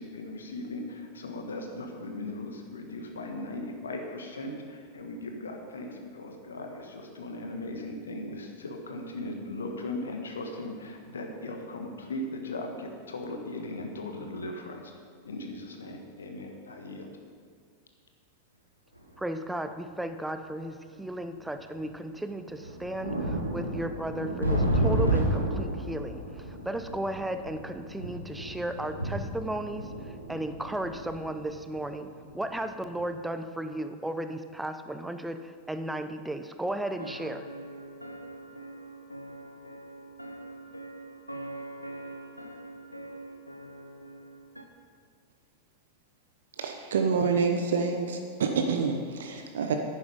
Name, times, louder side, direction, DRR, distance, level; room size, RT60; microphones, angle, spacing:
voice 1, 0.0-14.9 15.2-17.1, left 2 dB, 70° left, 3 dB, 1.5 m, -38 dB
sound 1, 19.0-19.1 20.1-20.2 21.3-21.4 21.8-21.9 22.4-32.5 32.8-33.0, right 1 dB, 90° right, 1.5 m, -31 dB
voice 2, 19.2-37.4, right 1 dB, 5° right, 9 dB, 0.7 m, -35 dB
sound 2, 37.0-44.6, right 1 dB, 90° left, 0.9 m, -43 dB
voice 3, 46.6-49.8, right 5 dB, 60° right, 4 dB, 0.8 m, -27 dB
9.9 x 9.7 x 5.5 m, 2.1 s
figure-of-eight pair, 90°, 0 cm